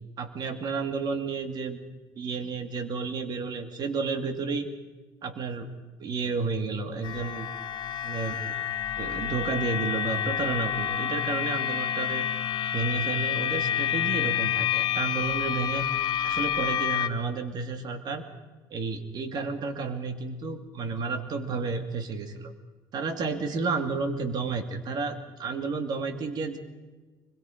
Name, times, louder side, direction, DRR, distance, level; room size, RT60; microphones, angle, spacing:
voice 1, 0.2-1.8 2.2-4.7 5.2-5.7 6.0-7.5 8.0-8.6 9.0-12.3 12.7-15.9 16.2-18.2 18.7-22.5 22.9-26.6, right 4 dB, 55° right, 7 dB, 2.3 m, -31 dB
sound 1, 7.0-17.1, left 10 dB, 60° left, 1.0 m, -28 dB
24.0 x 21.5 x 5.1 m, 1.3 s
cardioid pair, 105°, 8 cm